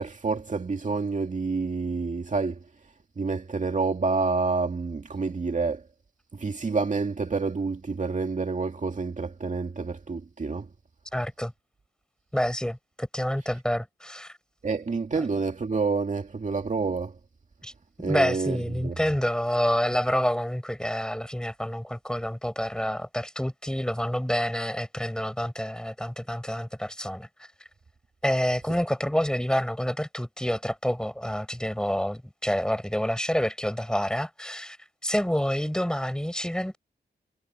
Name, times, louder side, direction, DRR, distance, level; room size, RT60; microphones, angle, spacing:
voice 1, 0.0-2.6 3.2-5.8 6.3-10.7 14.6-17.1 18.0-19.0, right 4 dB, 45° right, 2.3 m, -28 dB
voice 2, 11.1-11.5 12.3-14.4 15.1-15.2 17.6-17.7 18.0-27.5 28.2-34.8 35.0-36.8, equal, 5° left, 4.3 m, -28 dB
wide cardioid pair, 110°, 18 cm